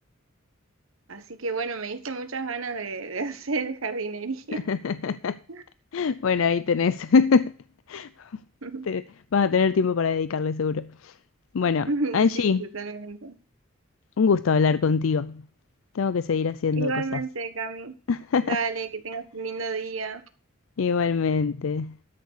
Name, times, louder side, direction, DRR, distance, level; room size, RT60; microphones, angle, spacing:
voice 1, 1.1-4.6 5.5-5.6 8.6-8.9 11.9-13.4 16.8-17.9 18.4-20.2, right 3 dB, 80° right, 1.5 m, -31 dB
voice 2, 4.5-5.4 5.9-7.5 7.9-8.1 8.9-9.0 9.3-11.1 11.5-12.6 14.2-15.4 15.9-17.2 18.1-18.6 20.8-21.9, left 5 dB, 75° left, 0.5 m, -23 dB
13.0 x 6.6 x 6.7 m
head